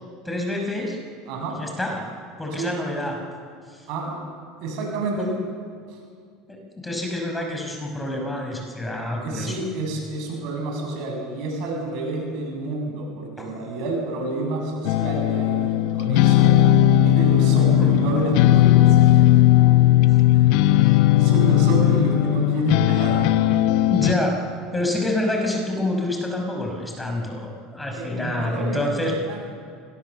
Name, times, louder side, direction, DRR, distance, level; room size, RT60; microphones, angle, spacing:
voice 1, 0.2-1.0 1.6-2.1 2.4-3.2 3.7-3.8 5.2-5.3 6.5-9.6 13.4-13.5 17.8-18.0 20.7-21.0 23.9-24.4 24.7-29.4, left 1 dB, 10° left, 1 dB, 5.5 m, -27 dB
voice 2, 4.6-5.3 5.9-6.0 9.2-16.7 17.0-19.2 20.3-20.8 21.1-23.3 27.9-28.8 29.3-29.4, right 2 dB, 65° right, 1 dB, 7.5 m, -29 dB
sound 1, 14.8-24.1, left 13 dB, 70° left, 0.9 m, -17 dB
24.5 x 19.5 x 7.0 m, 2.2 s
hypercardioid pair, 90°, 0 cm